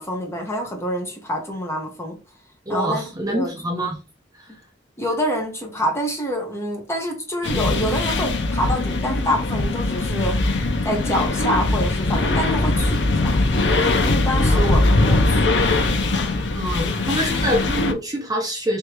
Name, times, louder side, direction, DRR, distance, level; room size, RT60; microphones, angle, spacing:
voice 1, 0.0-2.2 2.7-3.5 5.0-10.4 10.8-13.3 14.0-15.6, equal, 15° left, 1.1 m, -26 dB
voice 2, 2.7-4.0 4.4-4.5 14.4-14.9 16.5-18.8, equal, 20° right, 0.7 m, -26 dB
sound 1, 7.4-17.9, left 2 dB, 80° left, 0.7 m, -21 dB
3.5 x 3.2 x 3.0 m
head